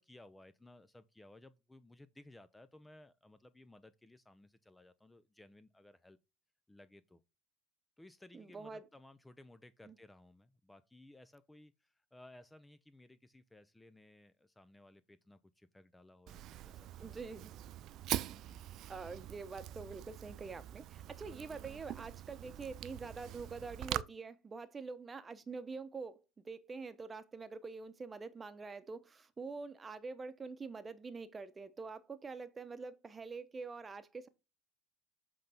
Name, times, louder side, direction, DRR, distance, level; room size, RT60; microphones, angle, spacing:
voice 1, 0.0-6.2 6.7-7.2 8.0-17.2 18.4-18.6, left 1 dB, 10° left, 0.6 m, -59 dB
voice 2, 8.3-8.9 9.9-10.0 17.0-17.5 18.9-34.3, right 4 dB, 25° right, 1.0 m, -46 dB
Fire, 16.3-24.0, right 13 dB, 55° right, 0.4 m, -43 dB
7.5 x 3.9 x 4.3 m
hypercardioid pair, 85°, 0 cm